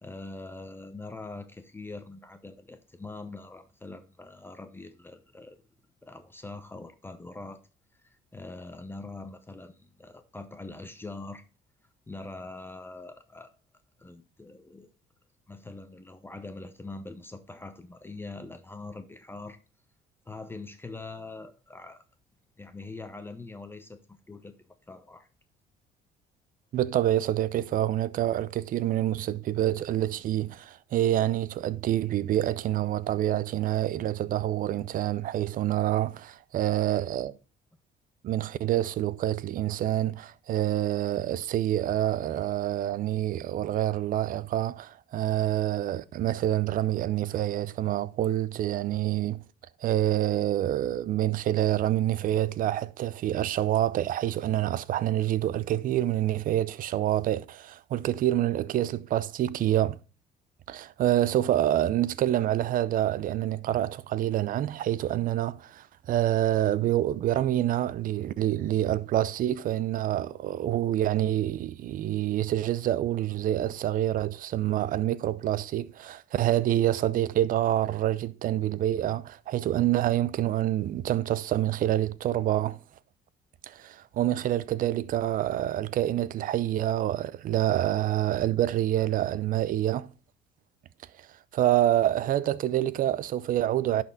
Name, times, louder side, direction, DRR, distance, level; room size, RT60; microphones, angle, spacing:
voice 1, 0.0-5.6 6.0-7.6 8.0-11.4 12.1-13.5 14.0-14.9 15.5-19.6 20.3-22.0 22.6-24.5 24.9-25.3, left 3 dB, 15° left, 0.7 m, -43 dB
voice 2, 26.7-37.3 38.2-49.4 49.8-60.0 60.7-82.8 83.6-90.1 91.5-94.0, right 12 dB, 55° right, 0.5 m, -27 dB
11.0 x 4.4 x 3.9 m
cardioid pair, 110°, 17 cm